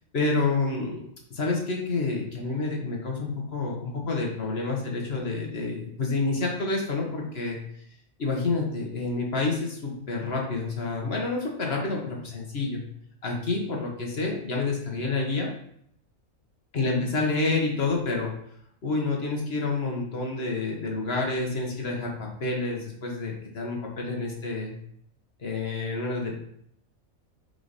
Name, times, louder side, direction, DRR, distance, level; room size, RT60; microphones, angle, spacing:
voice 1, 0.1-1.0 1.3-7.6 8.2-12.8 13.2-15.5 16.7-18.3 18.8-24.7 25.4-26.3, left 3 dB, 50° left, -1 dB, 1.4 m, -28 dB
5.0 x 4.7 x 4.1 m, 0.68 s
omnidirectional pair, 1.4 m